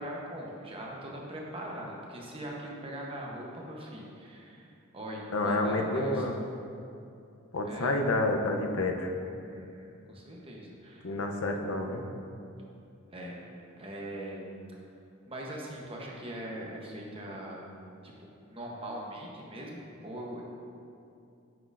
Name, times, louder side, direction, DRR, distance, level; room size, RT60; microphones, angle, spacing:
voice 1, 0.0-4.7 4.9-6.2 7.6-8.0 9.4-11.1 13.1-13.4 13.8-14.5 15.3-17.7 18.0-18.1 18.5-20.4, right 1 dB, 25° right, -2 dB, 0.9 m, -41 dB
voice 2, 5.3-6.3 7.5-9.1 11.0-12.1, left 2 dB, 85° left, 3 dB, 0.7 m, -29 dB
8.6 x 6.2 x 2.6 m, 2.6 s
head